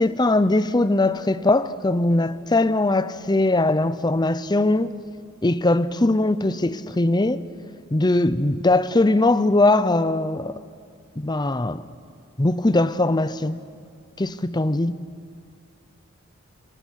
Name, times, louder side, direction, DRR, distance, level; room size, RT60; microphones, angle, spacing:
voice 1, 0.0-4.9 5.4-7.4 7.9-10.6 11.2-11.8 12.4-13.6 14.2-15.1, left 2 dB, 20° left, 0.7 m, -20 dB
29.5 x 25.5 x 6.5 m
head